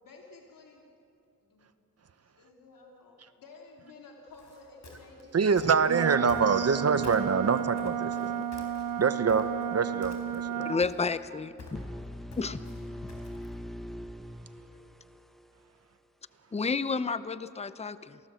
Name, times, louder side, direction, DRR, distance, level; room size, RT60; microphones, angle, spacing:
voice 1, 0.0-0.9 1.4-1.7 2.3-6.1 8.8-9.3 14.5-14.9, left 3 dB, 75° left, 0 dB, 3.3 m, -53 dB
sound 1, 4.3-6.8 7.0-9.7 10.0-10.5 10.8-13.6, left 3 dB, 55° left, 4.6 m, -49 dB
voice 2, 5.3-8.3 9.0-10.7, right 5 dB, 50° right, 11 dB, 1.0 m, -25 dB
Wind instrument woodwind instrument, 5.9-10.8, right 9 dB, 70° right, 1.0 m, -33 dB
voice 3, 10.6-11.9 12.4-12.6 16.5-18.2, left 4 dB, 20° left, 14 dB, 0.7 m, -31 dB
sound 2, 11.7-15.6, equal, ahead, 1.0 m, -42 dB
28.0 x 18.5 x 7.8 m, 2.6 s
wide cardioid pair, 110°, 33 cm